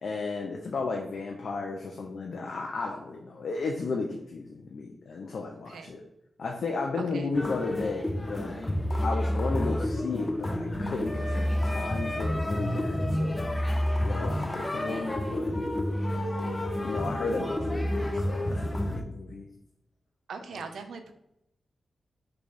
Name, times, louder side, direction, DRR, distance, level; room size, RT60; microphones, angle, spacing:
voice 1, 0.0-6.0 6.4-8.5 9.0-13.4 14.0-15.6 16.8-19.5 20.5-20.6, left 3 dB, 75° left, 1 dB, 0.4 m, -34 dB
sound 1, 7.3-19.0, left 1 dB, 20° left, 0.5 m, -29 dB
voice 2, 20.3-21.1, right 5 dB, 85° right, 7 dB, 0.3 m, -40 dB
3.2 x 2.3 x 3.9 m, 0.85 s
cardioid pair, 60°, 0 cm